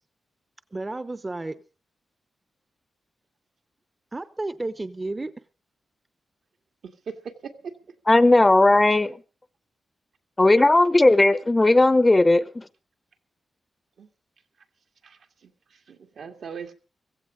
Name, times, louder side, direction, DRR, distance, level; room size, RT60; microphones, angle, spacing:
voice 1, 0.7-1.6 4.1-5.3, right 2 dB, 25° right, 0.8 m, -32 dB
voice 2, 6.8-7.7 14.0-14.1 15.0-16.7, right 6 dB, 75° right, 2.0 m, -40 dB
voice 3, 8.1-9.2 10.4-12.6, left 2 dB, 20° left, 0.7 m, -17 dB
16.0 x 15.5 x 5.0 m
wide cardioid pair, 100°, 0 cm